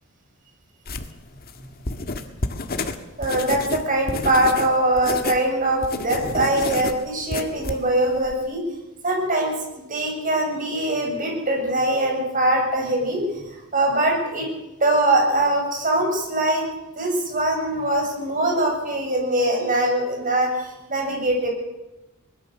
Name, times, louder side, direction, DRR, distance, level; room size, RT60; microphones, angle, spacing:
sound 1, 0.9-5.4 5.7-8.4, left 2 dB, 45° left, 1.7 m, -29 dB
voice 1, 3.2-8.6 9.0-13.4 13.7-14.5 14.8-16.6 16.9-21.5, right 1 dB, 40° right, 1 dB, 7.4 m, -22 dB
23.0 x 20.5 x 6.7 m, 1.0 s
head